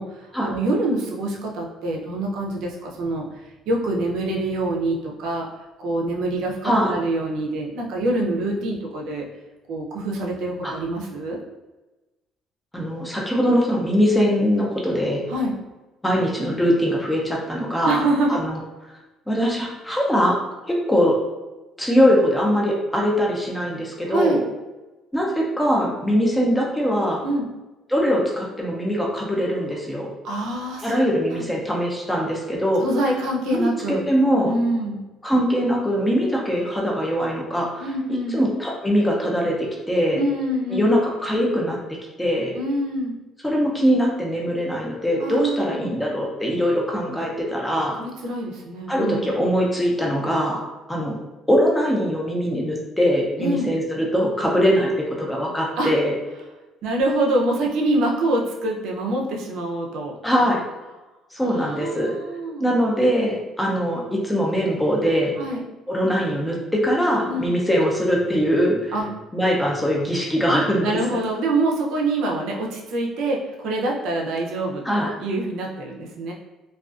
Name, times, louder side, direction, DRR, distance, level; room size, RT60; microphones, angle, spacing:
voice 1, 0.0-3.2 3.7-5.5 5.8-9.3 9.7-11.4 15.3-15.5 17.8-18.4 24.1-24.4 27.2-27.5 30.2-31.0 31.3-31.5 32.8-34.1 34.4-35.0 37.8-38.4 40.1-41.0 42.5-43.1 45.2-46.0 48.0-49.3 53.4-53.7 55.8-55.9 56.8-60.1 61.4-62.7 65.4-65.6 67.3-67.5 68.9-69.0 70.8-74.8 75.2-76.3, right 1 dB, 75° right, -1 dB, 0.5 m, -25 dB
voice 2, 6.6-7.0 10.6-10.7 12.7-15.2 16.0-18.0 18.3-18.6 19.3-20.4 20.7-21.2 21.8-24.4 25.1-27.2 27.9-30.1 30.8-32.8 33.5-34.5 35.2-37.9 38.3-40.2 40.7-42.5 43.4-48.0 48.9-50.6 50.9-51.2 51.5-56.1 60.2-60.6 61.3-62.1 62.6-65.3 65.9-68.9 69.3-71.2 74.8-75.1, equal, 5° left, -2 dB, 0.5 m, -22 dB
2.4 x 2.3 x 2.4 m, 1.1 s
cardioid pair, 140°, 0 cm